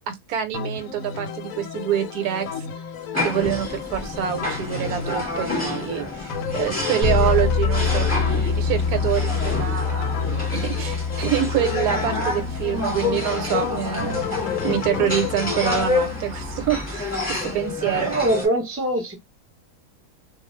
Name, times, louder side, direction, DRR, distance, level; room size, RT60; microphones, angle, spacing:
voice 1, 0.1-2.7 3.2-10.1 10.5-14.4 14.6-18.1, right 10 dB, 75° right, 1.2 m, -26 dB
sound 1, 0.5-15.9, left 7 dB, 70° left, 0.9 m, -33 dB
sound 2, 3.1-18.5, left 2 dB, 5° left, 1.2 m, -29 dB
Bass guitar, 7.0-16.8, left 5 dB, 30° left, 0.6 m, -27 dB
voice 2, 18.0-19.1, right 1 dB, 15° right, 0.5 m, -23 dB
2.4 x 2.4 x 3.0 m
omnidirectional pair, 1.7 m